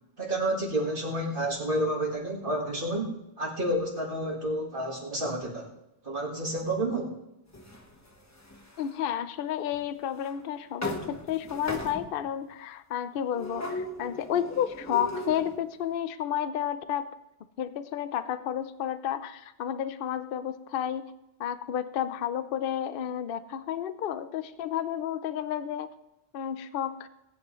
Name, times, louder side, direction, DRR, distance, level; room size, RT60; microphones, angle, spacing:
voice 1, 0.2-5.7 6.0-7.2, right 1 dB, 50° right, -2 dB, 1.9 m, -30 dB
sound 1, 7.5-9.0 9.7-9.8 10.2-10.4 10.8-12.3 13.3-15.6, left 1 dB, 15° left, 1.0 m, -38 dB
voice 2, 8.8-17.1 17.6-21.1 21.4-25.9 26.3-27.1, left 10 dB, 60° left, 13 dB, 0.7 m, -31 dB
18.0 x 9.5 x 3.1 m, 0.91 s
omnidirectional pair, 1.2 m